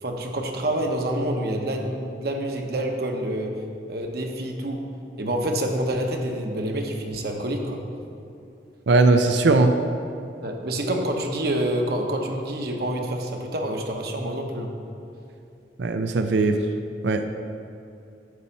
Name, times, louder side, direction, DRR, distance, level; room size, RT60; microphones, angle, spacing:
voice 1, 0.0-3.6 3.9-4.9 5.2-7.8 10.4-14.7, right 1 dB, 60° right, 2 dB, 0.9 m, -27 dB
voice 2, 8.9-9.7 15.8-16.6 17.0-17.3, right 3 dB, 75° right, 7 dB, 0.5 m, -19 dB
9.6 x 4.3 x 7.0 m, 2.6 s
head